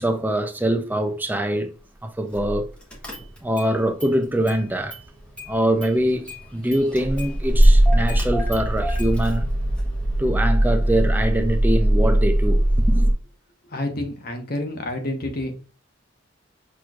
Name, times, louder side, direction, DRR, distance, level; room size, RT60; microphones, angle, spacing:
voice 1, 0.0-1.7 2.0-2.7 3.4-4.9 5.5-9.5 10.2-13.1, right 1 dB, 10° right, 0.5 m, -23 dB
Car / Engine starting, 2.3-2.6 2.9-3.7 4.0-5.1 5.4-13.1, right 1 dB, 5° left, 1.1 m, -20 dB
voice 2, 13.7-15.5, left 1 dB, 50° left, 1.0 m, -28 dB
6.0 x 3.1 x 2.4 m
head